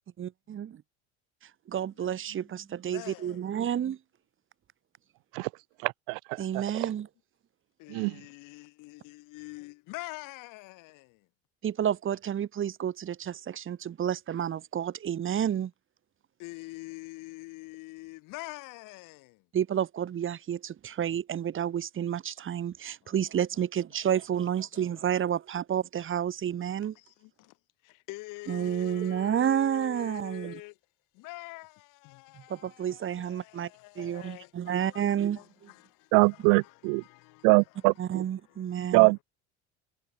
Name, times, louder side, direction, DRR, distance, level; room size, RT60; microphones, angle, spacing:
voice 1, 0.2-0.7 1.7-4.0 6.4-7.1 11.6-15.7 19.5-27.0 28.5-30.5 32.3-33.7 34.0-35.4 38.0-39.1, right 9 dB, 35° right, 2.0 m, -30 dB
voice 2, 2.0-3.5 7.8-11.3 16.4-19.5 23.0-23.2 23.9-24.2 24.7-25.1 25.3-25.4 26.9-27.6 27.8-30.8 31.1-35.1 35.3-37.5 38.4-39.0, left 23 dB, 70° left, 6.1 m, -46 dB
voice 3, 5.8-6.6 7.9-8.2 36.1-37.0 37.4-38.2 38.9-39.2, right 40 dB or more, 70° right, 0.5 m, -23 dB
supercardioid pair, 95°, 33 cm